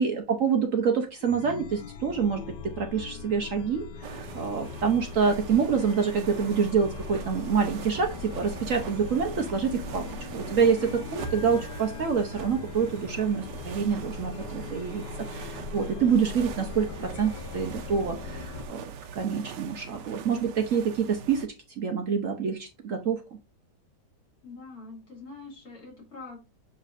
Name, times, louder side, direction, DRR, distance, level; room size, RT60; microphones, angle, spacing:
voice 1, 0.0-10.0 10.3-15.0 15.3-18.8 19.1-23.2, right 6 dB, 60° right, 5 dB, 0.9 m, -27 dB
Chime, 1.2-18.7, left 4 dB, 80° left, 1.3 m, -40 dB
sound 1, 4.0-21.5, right 7 dB, 80° right, 1.4 m, -42 dB
voice 2, 24.4-26.4, left 3 dB, 55° left, 1 dB, 2.7 m, -44 dB
6.6 x 5.7 x 2.5 m, 0.30 s
omnidirectional pair, 1.9 m